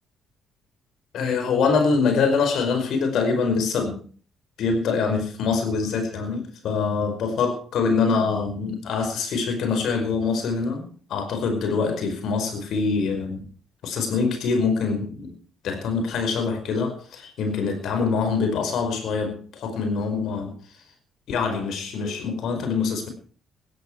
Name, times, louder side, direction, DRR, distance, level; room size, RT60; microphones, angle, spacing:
voice 1, 1.1-4.0 4.6-13.4 13.8-15.3 15.6-20.5 21.3-23.1, left 5 dB, 65° left, 6 dB, 5.1 m, -24 dB
16.5 x 14.0 x 4.7 m, 0.42 s
hypercardioid pair, 50°, 0 cm